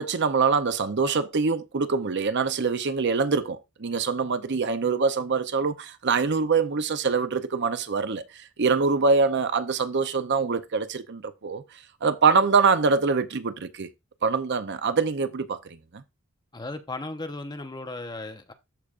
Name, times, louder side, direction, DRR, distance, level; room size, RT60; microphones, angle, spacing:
voice 1, 0.0-8.2 8.6-11.6 12.0-13.9 14.2-15.6 15.9-16.0, right 4 dB, 55° right, 0.7 m, -24 dB
voice 2, 16.5-18.5, left 2 dB, 20° left, 0.8 m, -36 dB
13.5 x 5.0 x 2.5 m
head